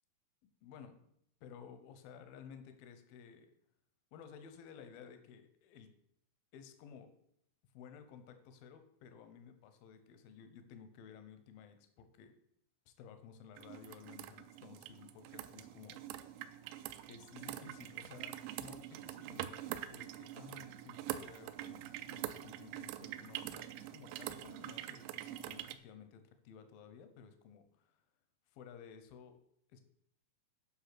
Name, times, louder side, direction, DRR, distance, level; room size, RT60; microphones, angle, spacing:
voice 1, 0.6-1.0 1.4-3.5 4.1-5.9 6.5-7.1 7.7-12.4 12.9-16.6 17.1-28.0 28.5-29.4 29.7-29.8, left 7 dB, 75° left, 9 dB, 2.3 m, -55 dB
sound 1, 13.6-25.8, right 13 dB, 90° right, 2.9 m, -45 dB
8.8 x 5.6 x 6.0 m, 0.74 s
omnidirectional pair, 5.1 m